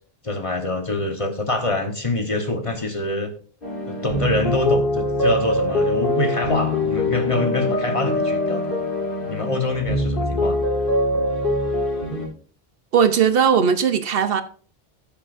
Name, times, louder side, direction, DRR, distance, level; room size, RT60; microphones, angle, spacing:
voice 1, 0.2-3.3 3.9-8.8 9.3-10.6, left 2 dB, 35° left, 1.1 m, -25 dB
sound 1, 3.6-12.3, left 1 dB, 60° left, 3.5 m, -23 dB
voice 2, 12.9-14.4, right 7 dB, 70° right, 0.9 m, -18 dB
14.0 x 7.1 x 2.5 m
omnidirectional pair, 1.0 m